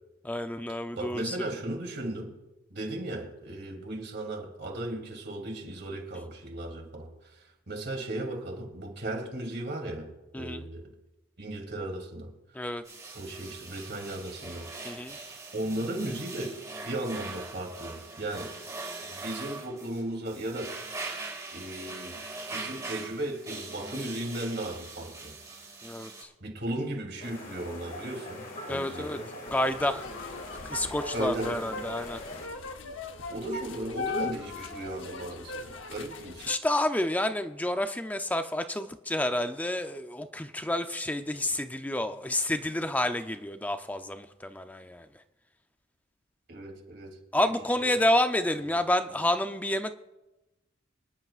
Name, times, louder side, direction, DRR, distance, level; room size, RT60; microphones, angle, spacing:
voice 1, 0.2-1.5 10.3-10.7 12.5-12.8 14.8-15.2 25.8-26.3 28.7-29.2 29.5-30.0 30.6-32.2 36.5-45.1 47.3-49.9, left 1 dB, 10° left, 0.5 m, -29 dB
voice 2, 1.0-2.3 2.7-10.1 10.3-10.9 11.4-12.3 13.1-14.7 15.5-16.6 16.8-18.5 19.1-20.8 21.5-22.2 22.5-25.4 26.4-29.3 31.1-31.7 33.3-36.6 46.5-47.5 47.8-48.0 48.7-48.8, right 1 dB, 55° right, 2.3 m, -36 dB
sound 1, 12.9-26.2, right 3 dB, 15° right, 2.2 m, -41 dB
sound 2, 27.2-32.5, left 1 dB, 40° left, 2.0 m, -42 dB
sound 3, 29.5-36.5, left 3 dB, 65° left, 0.9 m, -39 dB
25.5 x 10.5 x 2.4 m
head